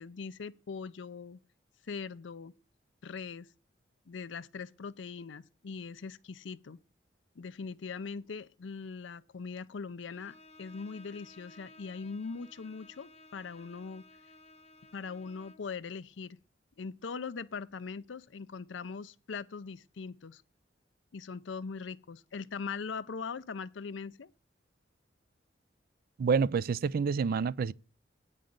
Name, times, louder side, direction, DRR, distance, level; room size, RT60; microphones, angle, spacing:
voice 1, 0.0-1.4 1.9-2.5 3.0-3.5 4.1-6.8 7.4-14.0 14.9-16.4 16.8-20.4 21.1-24.3, left 5 dB, 70° left, 0.5 m, -41 dB
Bowed string instrument, 10.1-15.7, left 2 dB, 35° left, 0.8 m, -57 dB
voice 2, 26.2-27.7, right 5 dB, 50° right, 0.4 m, -28 dB
8.9 x 5.5 x 6.4 m
head